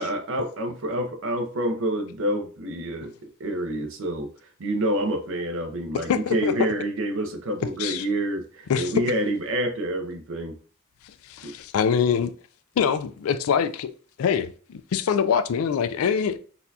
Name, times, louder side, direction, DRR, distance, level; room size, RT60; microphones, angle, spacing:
voice 1, 0.0-3.1 3.4-4.3 4.6-10.6 11.4-11.5, right 1 dB, 65° right, 0.6 m, -27 dB
voice 2, 5.9-6.7 7.8-8.1 8.7-8.9 11.0-12.3 12.8-13.9 14.2-16.4, left 7 dB, 75° left, 0.3 m, -24 dB
4.1 x 2.3 x 2.7 m
head